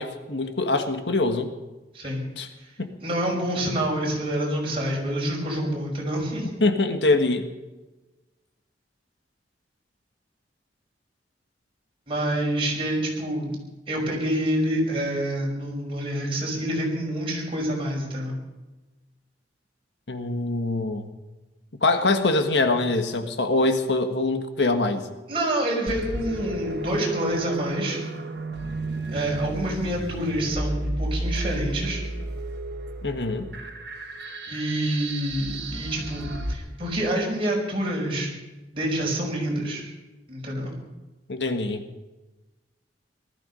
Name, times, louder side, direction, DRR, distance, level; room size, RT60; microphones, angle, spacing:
voice 1, 0.0-1.5 2.4-2.5 2.8-2.9 6.6-7.5 20.1-21.1 21.8-25.1 33.0-33.5 41.3-41.8, left 2 dB, 80° left, 7 dB, 1.5 m, -24 dB
voice 2, 3.0-6.5 12.1-13.6 13.9-18.4 25.3-28.0 29.1-32.0 34.5-38.3 38.7-39.9 40.3-40.8, right 1 dB, 30° right, -2 dB, 5.5 m, -27 dB
sound 1, 25.9-36.5, right 2 dB, 65° right, 1.9 m, -32 dB
19.0 x 13.5 x 5.5 m, 1.1 s
head